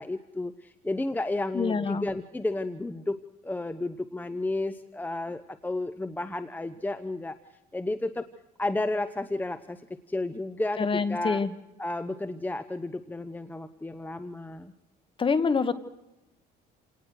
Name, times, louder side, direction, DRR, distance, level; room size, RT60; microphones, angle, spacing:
voice 1, 0.0-7.4 7.7-8.3 8.6-9.8 10.1-11.4 11.8-14.7, left 2 dB, 10° left, 12 dB, 0.9 m, -32 dB
voice 2, 1.5-2.1 10.8-11.5 15.2-15.7, left 5 dB, 30° left, 12 dB, 1.7 m, -26 dB
28.5 x 18.5 x 6.4 m, 0.91 s
cardioid pair, 110°, 17 cm